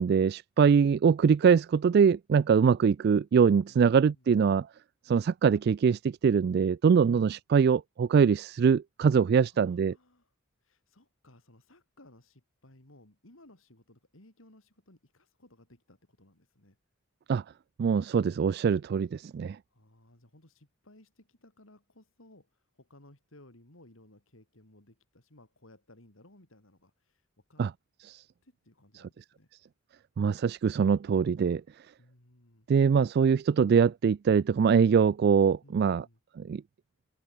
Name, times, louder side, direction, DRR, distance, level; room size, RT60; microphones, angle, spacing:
voice 1, 0.0-4.7 5.0-9.9 17.3-17.4 17.8-19.6 27.6-27.7 28.1-28.2 30.2-31.6 32.7-36.0 36.4-36.6, right 6 dB, 50° right, 0.3 m, -23 dB
voice 2, 3.7-4.3 6.9-7.1 9.4-10.3 10.6-16.8 19.7-27.6 28.4-29.5 32.0-32.7 35.6-36.2, left 1 dB, 85° left, 4.4 m, -59 dB
open air
head